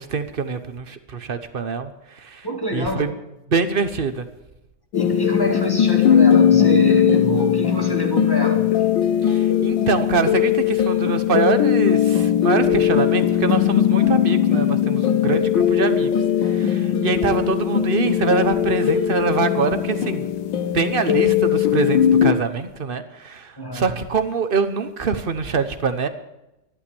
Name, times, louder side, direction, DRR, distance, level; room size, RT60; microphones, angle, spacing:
voice 1, 0.0-2.5 2.7-3.1 3.5-4.2 9.2-16.1 16.4-20.3 20.7-26.1, right 5 dB, 40° right, 9 dB, 0.8 m, -24 dB
voice 2, 2.4-3.0 4.9-8.7 23.6-23.9, equal, 10° left, 3 dB, 1.9 m, -26 dB
sound 1, 4.9-22.3, left 9 dB, 70° left, 1.7 m, -19 dB
13.5 x 11.5 x 6.9 m, 0.93 s
omnidirectional pair, 2.2 m